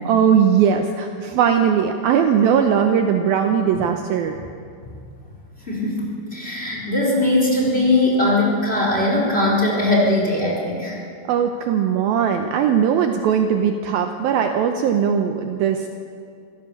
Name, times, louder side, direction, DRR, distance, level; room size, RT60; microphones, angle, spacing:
voice 1, 0.1-4.4 11.2-15.9, right 8 dB, 75° right, 5 dB, 2.4 m, -19 dB
voice 2, 5.6-11.0, left 2 dB, 15° left, -3 dB, 4.3 m, -20 dB
25.0 x 16.5 x 7.2 m, 2.4 s
omnidirectional pair, 4.9 m